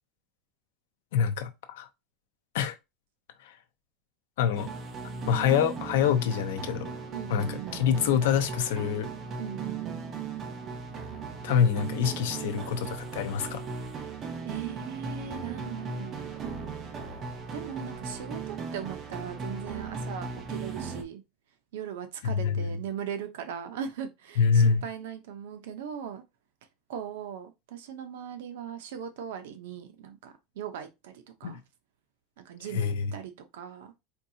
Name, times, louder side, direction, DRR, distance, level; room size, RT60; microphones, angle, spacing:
voice 1, 1.1-1.9 2.5-2.8 3.4-3.6 4.4-4.7 5.3-6.9 7.3-9.1 11.4-13.6 22.2-22.8 24.4-24.8 31.4-31.6 32.7-33.1, left 7 dB, 75° left, 0.6 m, -26 dB
sound 1, 4.5-21.0, right 4 dB, 20° right, 0.6 m, -37 dB
voice 2, 7.1-7.8 9.4-10.1 14.4-16.4 17.5-21.2 21.7-26.2 26.9-31.6 32.4-33.9, right 8 dB, 75° right, 0.7 m, -39 dB
4.5 x 2.7 x 2.7 m
supercardioid pair, 180°, 0 cm